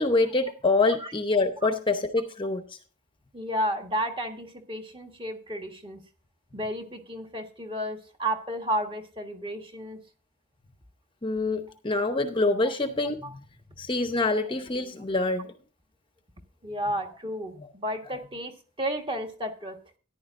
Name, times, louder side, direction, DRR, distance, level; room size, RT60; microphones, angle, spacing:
voice 1, 0.0-2.8 11.2-13.4 13.8-15.6, left 3 dB, 25° left, 7 dB, 0.8 m, -26 dB
voice 2, 3.3-6.0 6.5-10.0 13.2-13.4 16.6-19.8, equal, 25° right, 4 dB, 1.6 m, -32 dB
14.0 x 11.0 x 2.6 m, 0.37 s
head